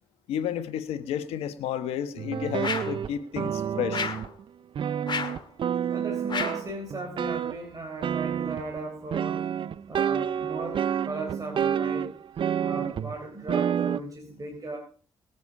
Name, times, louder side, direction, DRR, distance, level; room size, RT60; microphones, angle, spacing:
voice 1, 0.3-4.1, left 9 dB, 90° left, 1.3 m, -31 dB
sound 1, 2.2-4.4 4.8-7.6 8.0-8.8 9.1-13.1 13.5-14.0, right 8 dB, 60° right, 0.5 m, -29 dB
sound 2, 2.6-3.0 3.9-4.3 5.1-5.4 6.3-6.7, left 5 dB, 50° left, 2.0 m, -31 dB
voice 2, 5.9-9.4 9.9-12.1 12.6-14.8, right 2 dB, 35° right, 3.8 m, -37 dB
20.0 x 8.2 x 4.8 m
supercardioid pair, 60°, 10 cm